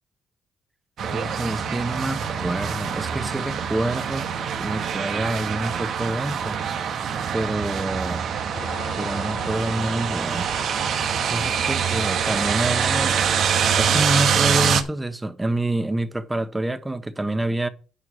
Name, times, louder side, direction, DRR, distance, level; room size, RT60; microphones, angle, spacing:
sound 1, 1.0-14.8, right 7 dB, 70° right, 1.3 m, -25 dB
voice 1, 1.1-4.3 4.6-6.6 7.3-8.3 9.0-10.5 11.3-13.2 13.8-17.7, right 1 dB, 15° right, 1.2 m, -27 dB
sound 2, 8.5-14.5, left 6 dB, 85° left, 2.6 m, -41 dB
9.9 x 4.7 x 7.8 m
cardioid pair, 90°, 0 cm